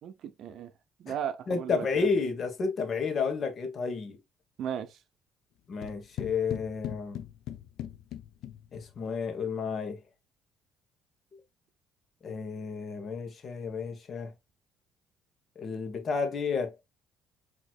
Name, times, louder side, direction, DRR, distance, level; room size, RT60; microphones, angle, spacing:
voice 1, 0.0-0.7 1.0-2.1 4.6-5.0, right 9 dB, 60° right, 0.7 m, -36 dB
voice 2, 1.5-4.2 5.7-7.2 8.7-10.0 12.2-14.3 15.5-16.9, left 5 dB, 40° left, 1.3 m, -31 dB
sound 1, 5.8-9.0, left 11 dB, 70° left, 0.6 m, -40 dB
6.2 x 3.1 x 2.4 m
cardioid pair, 115°, 0 cm